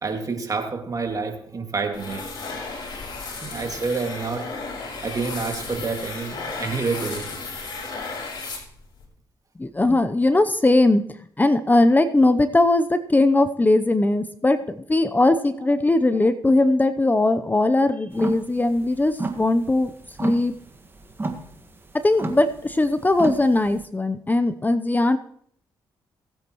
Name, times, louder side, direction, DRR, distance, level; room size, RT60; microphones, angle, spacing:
voice 1, 0.0-2.3 3.4-4.6 5.0-7.3, right 4 dB, 40° right, 2.3 m, -28 dB
sound 1, 1.9-9.1, left 4 dB, 55° left, 4.0 m, -34 dB
voice 2, 9.6-11.0 11.4-19.9 20.2-20.5 22.0-25.2, left 2 dB, 20° left, 0.8 m, -19 dB
sound 2, 18.1-23.9, right 3 dB, 25° right, 1.8 m, -32 dB
20.0 x 8.5 x 3.1 m
supercardioid pair, 60°, 9 cm